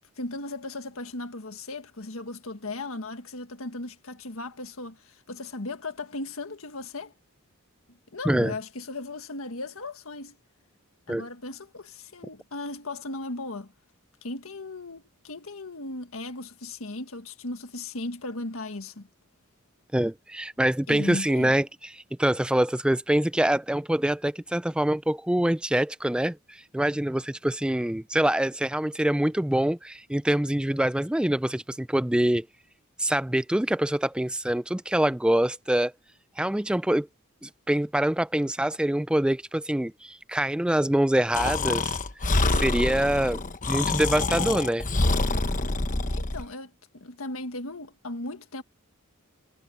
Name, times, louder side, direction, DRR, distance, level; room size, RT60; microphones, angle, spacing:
voice 1, 0.2-7.1 7.9-10.4 11.1-13.7 14.2-19.1 20.9-21.5 46.1-48.6, left 2 dB, 75° left, 1.7 m, -37 dB
voice 2, 19.9-32.5 33.0-35.9 36.4-37.1 37.4-42.0 42.5-43.4 43.7-44.9, right 1 dB, 5° right, 0.3 m, -25 dB
Breathing, 41.3-46.4, left 2 dB, 40° left, 1.2 m, -26 dB
head